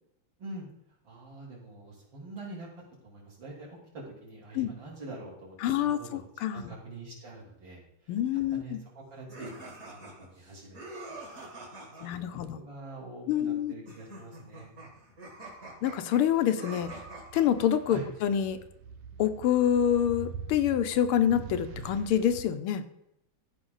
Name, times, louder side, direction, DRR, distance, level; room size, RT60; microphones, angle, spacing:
voice 1, 1.0-2.7 3.0-10.8 11.1-11.2 12.0-12.2 12.5-14.7 17.9-18.1, right 2 dB, 60° right, -5 dB, 3.9 m, -45 dB
voice 2, 5.6-6.0 6.4-6.7 8.1-8.8 12.0-12.6 13.3-13.7 15.8-16.9 17.3-18.6 19.2-22.8, left 10 dB, 85° left, 9 dB, 1.6 m, -26 dB
sound 1, 9.3-12.1 13.9-17.7, right 2 dB, 40° right, 2.9 m, -45 dB
sound 2, 16.0-22.4, right 7 dB, 90° right, 1.8 m, -44 dB
14.0 x 5.2 x 3.9 m, 0.81 s
omnidirectional pair, 2.4 m